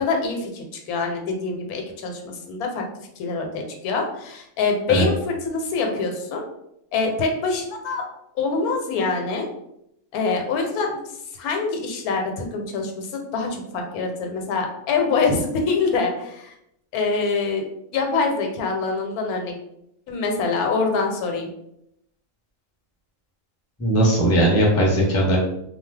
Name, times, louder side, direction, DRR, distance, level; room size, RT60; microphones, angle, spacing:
voice 1, 0.0-2.8 3.2-6.4 6.9-8.0 8.4-9.5 10.1-11.0 11.4-16.5 16.9-17.7 17.9-19.5 20.1-21.5, left 4 dB, 85° left, 3 dB, 1.1 m, -25 dB
voice 2, 23.8-25.4, right 1 dB, 15° left, -3 dB, 0.5 m, -18 dB
2.7 x 2.2 x 3.2 m, 0.78 s
omnidirectional pair, 1.5 m